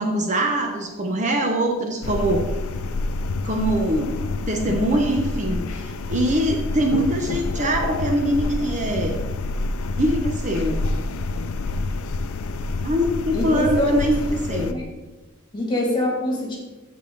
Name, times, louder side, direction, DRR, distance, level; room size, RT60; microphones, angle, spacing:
voice 1, 0.0-2.5 3.4-4.2 4.5-9.2 10.0-10.9 12.8-14.8, right 1 dB, 35° right, 3 dB, 0.8 m, -23 dB
sound 1, 2.0-14.7, left 3 dB, 70° left, 0.5 m, -28 dB
voice 2, 13.3-14.1 14.5-14.8 15.5-16.6, left 1 dB, 20° left, -2 dB, 2.4 m, -24 dB
14.0 x 4.8 x 3.9 m, 1.1 s
head